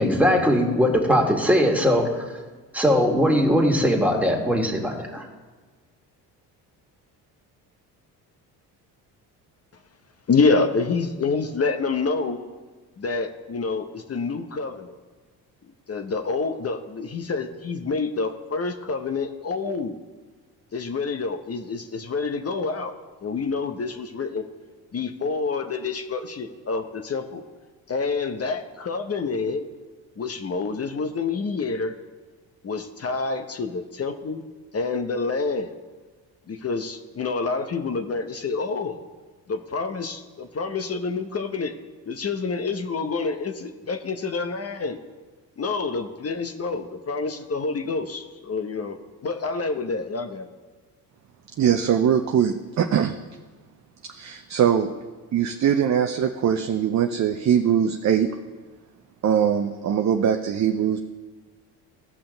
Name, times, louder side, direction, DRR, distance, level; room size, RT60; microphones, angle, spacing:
voice 1, 0.0-2.2 2.7-5.2, equal, 5° right, 0 dB, 2.2 m, -20 dB
voice 2, 10.3-12.4 13.0-14.9 15.9-20.0 20.7-22.9 23.2-24.4 24.9-27.4 27.9-29.7 30.2-31.9 32.6-34.4 34.7-35.7 36.5-39.0 39.5-41.8 42.1-45.0 45.6-49.0 49.2-50.5, left 4 dB, 35° left, 7 dB, 0.9 m, -27 dB
voice 3, 51.6-53.1 54.1-54.9 55.3-58.3 59.2-61.0, right 8 dB, 40° right, 6 dB, 0.7 m, -21 dB
16.0 x 5.7 x 3.9 m, 1.4 s
hypercardioid pair, 60°, 45 cm